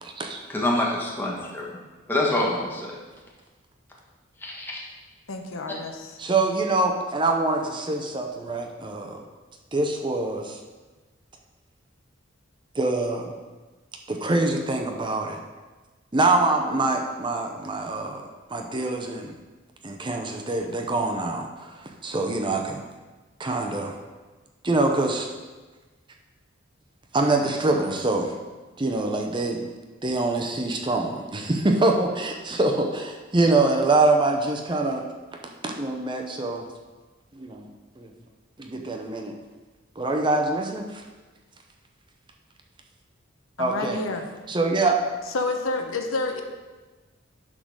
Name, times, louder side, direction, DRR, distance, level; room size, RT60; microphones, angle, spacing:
voice 1, 0.0-0.4 6.2-9.2 9.7-10.6 12.7-13.3 14.1-15.4 16.1-19.3 19.8-22.8 23.4-24.0 24.6-25.3 27.1-28.4 28.8-29.7 30.0-36.7 37.3-37.7 38.0-38.1 38.6-39.4 40.0-41.0 43.6-44.0 44.5-45.0, right 2 dB, 25° right, 3 dB, 0.6 m, -25 dB
voice 2, 0.5-1.8 2.1-2.9 4.4-4.8, left 1 dB, 10° left, -3 dB, 1.5 m, -26 dB
voice 3, 5.3-6.2 43.6-44.2 45.3-46.4, left 3 dB, 90° left, 4 dB, 0.9 m, -29 dB
10.0 x 3.9 x 6.3 m, 1.3 s
head